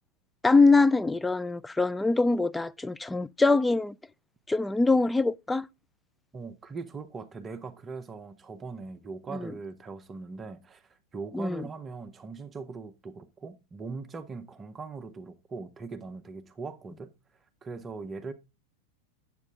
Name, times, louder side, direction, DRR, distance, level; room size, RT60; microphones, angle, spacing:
voice 1, 0.4-4.0 4.5-5.7 9.3-9.5 11.3-11.6, left 3 dB, 10° left, 0.4 m, -23 dB
voice 2, 6.3-17.1 17.6-18.3, right 4 dB, 20° right, 0.9 m, -40 dB
9.5 x 7.6 x 3.6 m
figure-of-eight pair, 90°, 0 cm